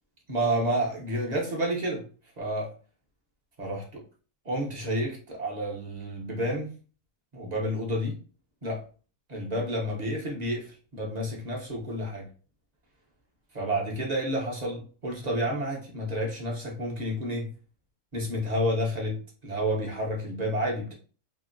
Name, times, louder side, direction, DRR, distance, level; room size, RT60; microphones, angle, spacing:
voice 1, 0.3-2.0 2.4-2.7 3.6-4.0 4.4-6.7 7.3-8.1 8.6-8.8 9.3-12.3 13.5-17.5 18.1-19.2 19.4-20.9, equal, 40° right, -2 dB, 0.6 m, -30 dB
2.8 x 2.6 x 2.5 m, 0.36 s
omnidirectional pair, 1.6 m